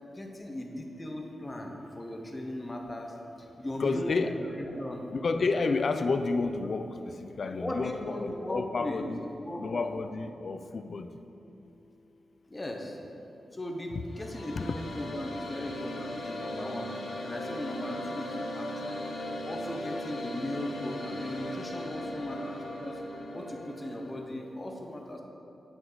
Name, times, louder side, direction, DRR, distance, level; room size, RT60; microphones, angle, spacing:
voice 1, 0.1-5.0 7.5-10.0 12.5-13.0 13.5-17.0 17.2-19.2 19.4-23.0 23.3-25.2, left 1 dB, 20° left, 1 dB, 0.7 m, -38 dB
voice 2, 3.8-4.3 5.1-6.9 7.4-9.2 9.6-11.1 14.6-14.7, left 4 dB, 50° left, 9 dB, 0.3 m, -30 dB
sound 1, 13.9-24.2, left 1 dB, 75° left, 0.9 m, -38 dB
8.7 x 5.2 x 3.9 m, 2.9 s
wide cardioid pair, 135°, 0 cm